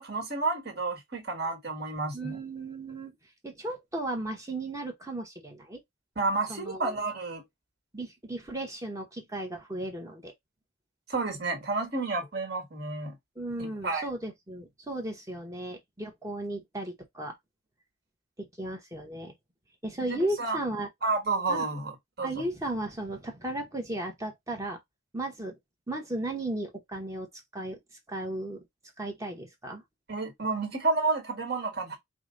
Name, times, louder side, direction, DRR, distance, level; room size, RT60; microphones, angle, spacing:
voice 1, 0.0-2.4 6.1-7.4 11.1-13.1 13.6-14.0 20.1-20.6 21.0-22.3 30.1-32.0, right 3 dB, 55° right, 1.6 m, -30 dB
voice 2, 2.1-3.1 3.4-5.8 6.5-6.9 7.9-10.3 13.4-17.3 18.4-19.3 19.8-20.9 21.5-21.7 22.2-24.8 25.1-25.5 25.9-27.3 27.5-27.8 28.1-28.6 29.0-29.8, right 1 dB, 15° right, 0.9 m, -35 dB
4.9 x 2.1 x 3.7 m
head